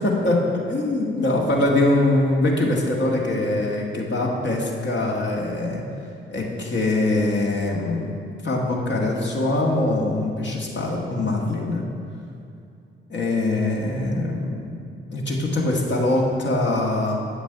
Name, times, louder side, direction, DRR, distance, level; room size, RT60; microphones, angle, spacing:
voice 1, 0.0-5.8 6.3-8.2 8.4-11.8 13.1-14.7 15.1-17.2, left 2 dB, 40° left, -1 dB, 1.6 m, -23 dB
7.6 x 7.1 x 4.6 m, 2.5 s
figure-of-eight pair, 45°, 29 cm